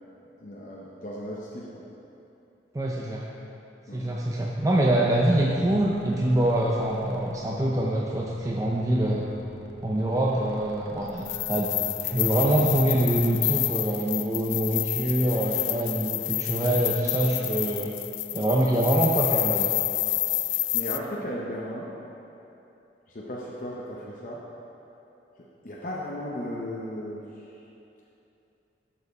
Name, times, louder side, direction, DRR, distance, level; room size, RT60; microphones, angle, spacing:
voice 1, 0.4-1.8 3.9-4.2 4.8-5.0 17.3-17.4 20.5-21.9 23.1-24.4 25.6-27.5, equal, 45° left, -5 dB, 0.7 m, -36 dB
voice 2, 2.7-3.3 3.9-9.3 9.8-17.9 18.3-19.7, right 1 dB, 20° right, -3 dB, 0.4 m, -25 dB
sound 1, 5.3-13.7, right 1 dB, 60° right, 0.7 m, -47 dB
sound 2, 11.2-21.0, left 16 dB, 90° left, 0.3 m, -29 dB
11.5 x 4.4 x 4.1 m, 2.9 s
head